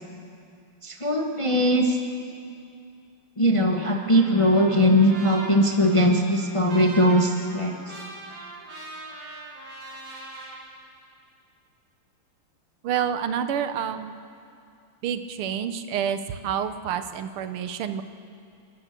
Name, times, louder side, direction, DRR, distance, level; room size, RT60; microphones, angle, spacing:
voice 1, 0.8-2.0 3.4-7.7, equal, 20° left, 2 dB, 0.8 m, -20 dB
Trumpet, 3.9-10.6, right 2 dB, 55° right, 3.7 m, -41 dB
voice 2, 12.8-14.1 15.0-18.0, right 8 dB, 80° right, 10 dB, 1.8 m, -28 dB
29.0 x 13.5 x 6.7 m, 2.4 s
omnidirectional pair, 2.4 m